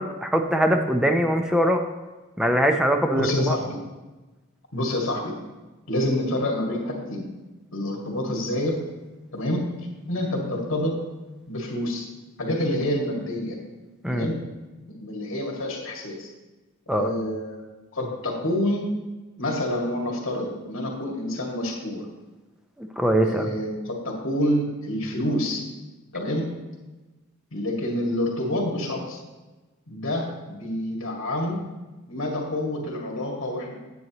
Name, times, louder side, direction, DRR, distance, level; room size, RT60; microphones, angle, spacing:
voice 1, 0.0-1.8 2.4-3.5 14.0-14.3 16.9-17.1 22.8-23.5, equal, 5° right, 5 dB, 0.6 m, -22 dB
voice 2, 3.2-3.8 4.7-5.3 5.9-7.3 7.7-8.8 9.3-9.7 10.1-11.0 11.5-12.1 12.4-13.6 14.1-14.4 14.9-16.3 16.9-17.7 17.9-18.9 19.4-22.0 23.3-25.6 26.1-26.5 27.5-29.2 29.9-31.6 32.1-33.7, left 1 dB, 65° left, 0 dB, 2.1 m, -27 dB
9.4 x 8.6 x 3.0 m, 1.2 s
head